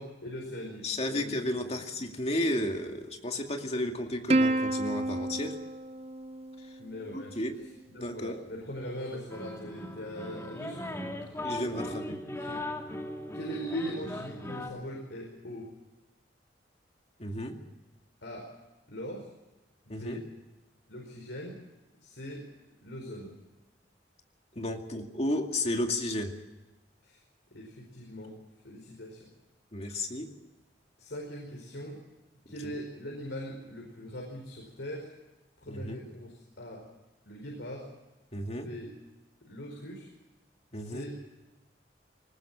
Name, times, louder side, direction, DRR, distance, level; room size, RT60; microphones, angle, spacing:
voice 1, 0.0-1.4 6.8-7.4 7.9-11.4 11.9-12.6 13.3-15.7 18.2-18.5 18.9-19.3 19.9-20.3 20.9-21.6 22.0-22.5 22.8-23.4 27.0-27.2 27.5-28.4 28.6-29.3 29.9-30.0 31.0-32.0 32.5-35.1 35.6-36.8 37.2-37.9 38.5-38.9 39.4-40.1 40.7-41.2, equal, 85° left, 0 dB, 5.0 m, -41 dB
voice 2, 0.8-5.6 6.6-6.7 7.1-7.6 8.0-8.4 11.4-12.2 17.2-17.6 19.9-20.2 24.6-26.4 29.7-30.3 35.7-36.0 38.3-38.7 40.7-41.1, left 1 dB, 35° left, 4 dB, 2.3 m, -33 dB
Plucked string instrument, 4.3-7.0, right 2 dB, 35° right, 0.9 m, -29 dB
sound 1, 9.3-14.7, left 1 dB, 15° left, 2.2 m, -38 dB
20.5 x 19.5 x 7.5 m, 1.1 s
head